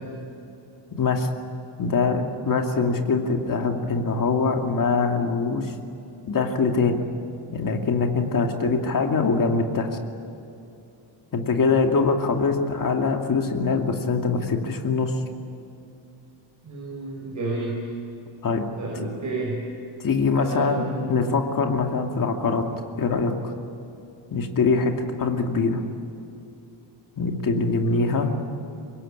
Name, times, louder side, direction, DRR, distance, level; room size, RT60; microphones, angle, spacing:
voice 1, 0.9-1.3 1.8-5.7 6.3-7.0 7.5-9.9 11.3-15.1 18.4-18.7 20.0-22.6 23.0-23.3 24.3-25.8 27.2-28.3, left 4 dB, 40° left, 3 dB, 2.6 m, -23 dB
voice 2, 16.6-17.9 18.8-19.6 20.3-21.1 27.8-28.1, right 2 dB, 35° right, -2 dB, 5.8 m, -31 dB
25.0 x 21.5 x 8.9 m, 2.8 s
cardioid pair, 160°, 49 cm